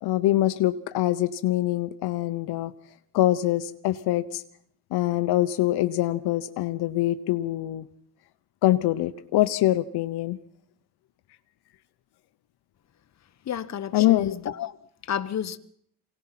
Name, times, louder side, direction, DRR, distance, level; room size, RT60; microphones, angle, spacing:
voice 1, 0.0-2.7 3.1-4.4 4.9-7.9 8.6-10.4 13.9-14.3, left 15 dB, 75° left, 0.9 m, -24 dB
voice 2, 13.5-14.8 15.1-15.6, left 9 dB, 45° left, 1.2 m, -31 dB
24.0 x 18.0 x 5.9 m
cardioid pair, 120°, 39 cm